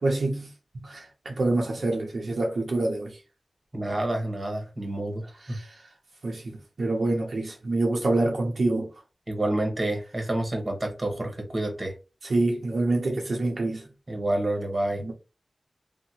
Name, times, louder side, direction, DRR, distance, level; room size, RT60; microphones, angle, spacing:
voice 1, 0.0-0.5 0.8-3.2 5.4-5.7 6.2-8.9 12.2-13.8 15.0-15.1, right 2 dB, 80° right, 0.7 m, -26 dB
voice 2, 3.7-5.6 9.3-11.9 14.1-15.0, right 1 dB, 35° right, 1.2 m, -28 dB
2.8 x 2.1 x 4.0 m
wide cardioid pair, 85°, 0 cm